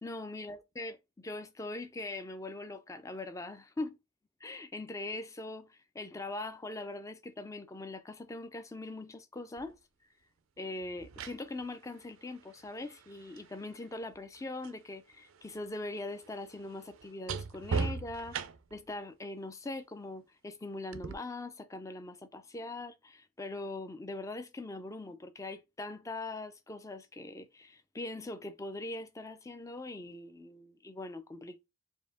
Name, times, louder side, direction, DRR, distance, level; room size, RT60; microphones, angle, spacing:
voice 1, 0.0-4.0 4.4-9.8 10.6-18.4 18.7-31.6, left 2 dB, 15° left, 0.4 m, -41 dB
sound 1, 9.6-9.7 10.8-14.8 15.1-18.9 20.9-21.1, right 4 dB, 75° right, 0.4 m, -40 dB
4.5 x 2.7 x 3.4 m
head